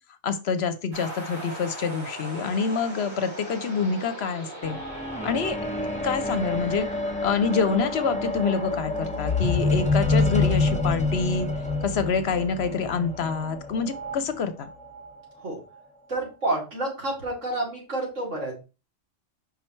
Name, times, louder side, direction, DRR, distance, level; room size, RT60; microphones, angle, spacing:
voice 1, 0.2-4.8 5.2-5.6 6.0-6.9 7.2-11.5 11.8-14.7, left 5 dB, 65° left, 11 dB, 0.8 m, -26 dB
sound 1, 0.9-12.5, right 1 dB, 55° right, 3.3 m, -41 dB
sound 2, 4.6-14.1 14.9-15.1, left 3 dB, 5° left, 0.8 m, -27 dB
voice 2, 16.1-18.5, right 2 dB, 75° right, -1 dB, 2.8 m, -29 dB
5.4 x 4.5 x 4.3 m, 0.30 s
omnidirectional pair, 1.3 m